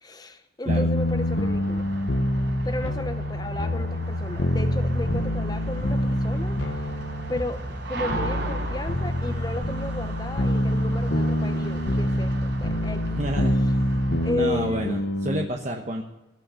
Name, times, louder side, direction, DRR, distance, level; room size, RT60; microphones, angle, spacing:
voice 1, 0.0-1.8 2.6-6.6 7.3-13.2 14.2-15.0, left 2 dB, 20° left, 8 dB, 0.9 m, -33 dB
sound 1, 0.7-15.5, left 1 dB, 70° left, 1.2 m, -26 dB
sound 2, 0.9-14.3, right 2 dB, 65° right, 4.6 m, -37 dB
voice 2, 13.2-13.6 14.3-16.0, right 1 dB, 40° right, 1 dB, 1.1 m, -29 dB
18.0 x 6.5 x 8.7 m, 1.0 s
head